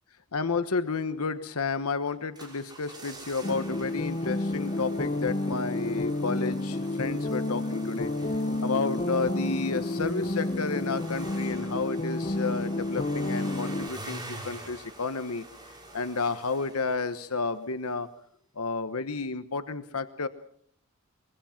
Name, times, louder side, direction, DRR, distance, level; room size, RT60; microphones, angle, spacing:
voice 1, 0.3-8.1 8.6-15.4 15.9-18.1 18.6-20.3, left 4 dB, 85° left, 11 dB, 1.1 m, -31 dB
sound 1, 2.1-17.6 17.8-17.9, right 2 dB, 20° right, 6.0 m, -46 dB
sound 2, 3.4-13.9, left 2 dB, 30° left, 0.9 m, -30 dB
24.0 x 22.5 x 5.9 m, 0.62 s
head